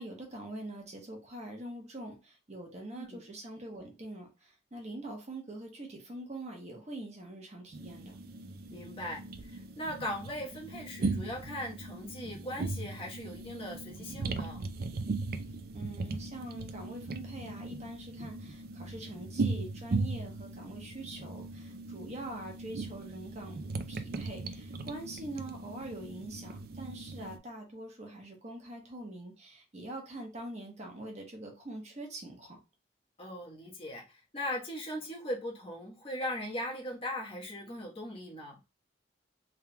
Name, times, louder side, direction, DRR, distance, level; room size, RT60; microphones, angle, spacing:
voice 1, 0.0-8.1 15.7-32.6, right 1 dB, 35° right, 1.1 m, -44 dB
sound 1, 7.7-27.4, right 3 dB, 50° right, 0.4 m, -38 dB
voice 2, 8.7-14.7 33.2-38.6, left 1 dB, 30° left, 1.2 m, -39 dB
4.4 x 3.5 x 2.2 m
head